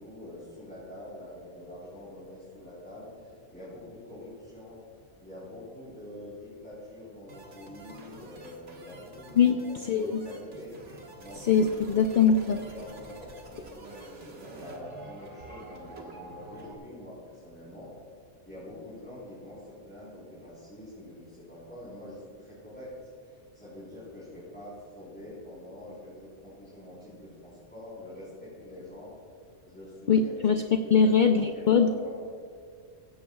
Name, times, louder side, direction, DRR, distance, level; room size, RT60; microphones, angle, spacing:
voice 1, 0.0-4.8 5.2-9.6 9.8-10.7 11.2-11.5 11.9-17.9 18.4-22.9 23.2-29.1 29.6-30.3 30.8-31.2 31.5-32.1, left 1 dB, 10° left, -10 dB, 3.7 m, -45 dB
sound 1, 7.3-16.7, right 2 dB, 70° right, 1.8 m, -48 dB
voice 2, 9.8-10.2 11.4-12.6 30.1-30.6 30.9-31.9, left 6 dB, 55° left, 7 dB, 0.5 m, -22 dB
16.5 x 15.5 x 2.4 m, 2.2 s
omnidirectional pair, 1.3 m